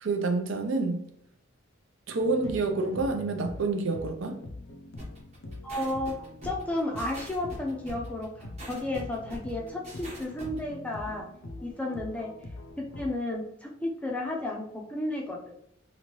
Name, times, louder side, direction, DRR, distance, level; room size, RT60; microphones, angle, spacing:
voice 1, 0.0-1.0 2.1-4.4, right 3 dB, 75° right, 0.5 m, -28 dB
kick and Progressive leads., 2.2-13.2, left 2 dB, 65° left, 0.5 m, -43 dB
sound 1, 5.0-10.6, right 1 dB, 35° right, 1.0 m, -44 dB
voice 2, 5.6-6.1 6.4-11.3 11.6-12.3 12.8-15.5, left 1 dB, 5° left, 0.5 m, -33 dB
3.0 x 2.6 x 2.9 m
head